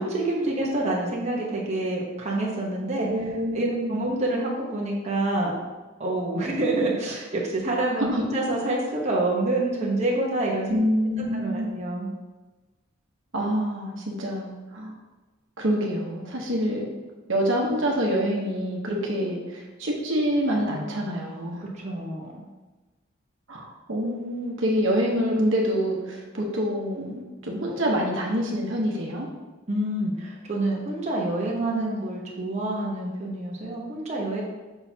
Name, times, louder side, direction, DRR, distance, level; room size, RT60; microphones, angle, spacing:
voice 1, 0.0-3.1 3.5-5.6 6.0-10.8 11.3-12.1 21.6-22.4 29.7-34.4, right 2 dB, 35° right, -4 dB, 1.0 m, -27 dB
voice 2, 3.0-4.0 8.1-8.2 10.7-11.7 13.3-14.9 15.6-16.9 17.3-21.6 23.5-29.3, equal, 70° right, -1 dB, 1.1 m, -26 dB
6.3 x 5.9 x 2.8 m, 1.2 s
head